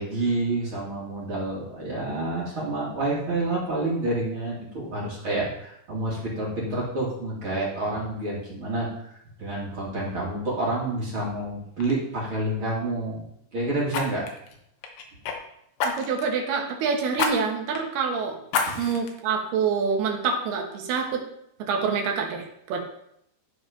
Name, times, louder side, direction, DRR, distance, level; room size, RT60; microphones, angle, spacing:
voice 1, 0.0-8.9 9.4-13.2 13.5-14.2 18.6-18.8, right 2 dB, 35° right, -5 dB, 2.7 m, -28 dB
Fire, 11.2-11.4 11.8-12.0 13.9-15.4 15.8-16.3 17.2-17.3 17.7-17.8 18.5-19.1 19.6-19.7, left 5 dB, 70° left, 2.6 m, -28 dB
voice 2, 15.8-18.4 18.8-21.2 21.7-22.8, right 5 dB, 80° right, 2 dB, 3.4 m, -26 dB
13.0 x 4.8 x 5.2 m, 0.75 s
omnidirectional pair, 4.5 m